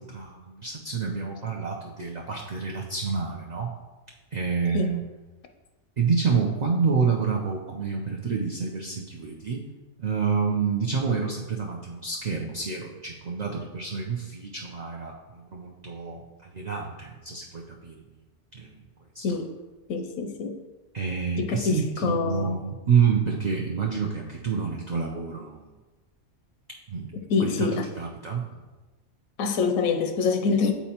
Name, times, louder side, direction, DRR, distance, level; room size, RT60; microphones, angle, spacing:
voice 1, 0.0-3.7 4.3-5.0 6.0-9.6 10.0-18.0 18.5-18.7 19.1-19.4 20.9-25.7 26.9-27.1 27.4-27.7 28.0-28.6, right 5 dB, 50° right, -1 dB, 0.5 m, -28 dB
voice 2, 19.9-20.6 21.4-22.6 27.3-27.9 29.4-30.7, left 5 dB, 85° left, 5 dB, 1.0 m, -25 dB
8.3 x 4.3 x 2.9 m, 1.2 s
omnidirectional pair, 1.4 m